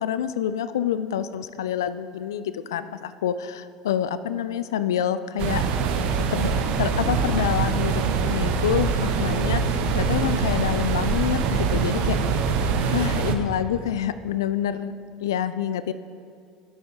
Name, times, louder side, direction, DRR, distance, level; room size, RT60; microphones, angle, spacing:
voice 1, 0.0-5.6 6.3-12.2 12.9-14.9 15.2-15.9, left 9 dB, 80° left, 13 dB, 0.3 m, -27 dB
sound 1, 5.4-13.4, right 5 dB, 60° right, 0.7 m, -24 dB
11.5 x 8.0 x 2.8 m, 2.3 s
hypercardioid pair, 75°, 2 cm